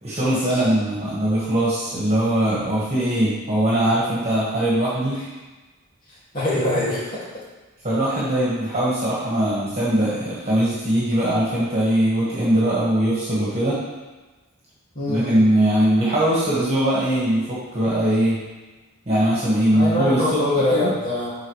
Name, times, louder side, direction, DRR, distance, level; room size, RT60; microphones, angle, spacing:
voice 1, 0.0-5.2 7.8-13.8 15.1-18.4 19.1-20.9, right 1 dB, 30° right, -8 dB, 1.6 m, -21 dB
voice 2, 6.3-7.2 14.9-15.4 19.7-21.3, left 1 dB, 40° left, -8 dB, 2.3 m, -23 dB
8.0 x 4.9 x 3.2 m, 1.2 s
head